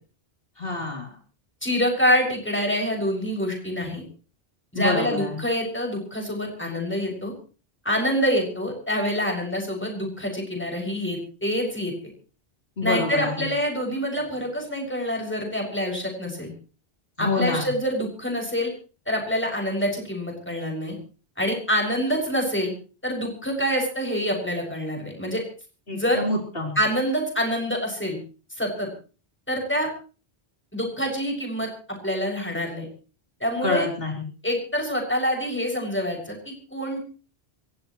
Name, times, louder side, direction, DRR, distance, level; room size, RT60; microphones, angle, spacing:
voice 1, 0.6-1.1 4.7-5.4 12.8-13.5 17.2-17.7 25.9-26.8 33.6-34.3, left 2 dB, 60° left, 0 dB, 3.9 m, -27 dB
voice 2, 1.6-4.0 4.7-7.3 7.8-11.9 12.8-16.5 17.2-18.7 19.1-21.0 21.4-22.7 23.0-25.4 25.9-26.2 26.7-28.2 28.6-28.9 29.5-29.9 30.7-32.9 33.4-33.8 34.4-37.0, equal, 10° left, 0 dB, 6.8 m, -26 dB
27.0 x 15.5 x 3.2 m, 0.37 s
omnidirectional pair, 1.1 m